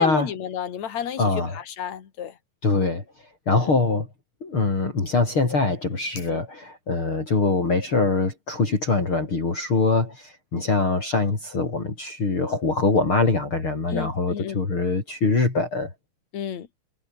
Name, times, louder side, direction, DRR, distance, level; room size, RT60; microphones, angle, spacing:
voice 1, 0.0-1.2 1.5-2.3 6.3-6.4 13.9-14.6 16.3-16.7, left 9 dB, 55° left, 3.4 m, -30 dB
voice 2, 1.2-1.6 2.6-3.0 3.5-4.1 4.4-15.9, left 3 dB, 35° left, 5.3 m, -23 dB
omnidirectional pair, 3.9 m